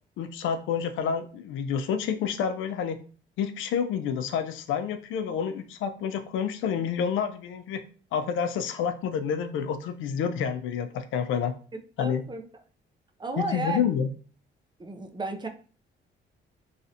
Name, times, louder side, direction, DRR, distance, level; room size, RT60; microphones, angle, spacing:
voice 1, 0.2-3.0 3.4-7.8 8.1-11.5 12.0-12.2 13.4-14.1, left 7 dB, 80° left, 8 dB, 0.4 m, -29 dB
voice 2, 12.0-12.5 13.2-13.8 14.8-15.5, right 3 dB, 20° right, 5 dB, 0.5 m, -32 dB
3.2 x 2.5 x 2.7 m, 0.39 s
cardioid pair, 90°, 20 cm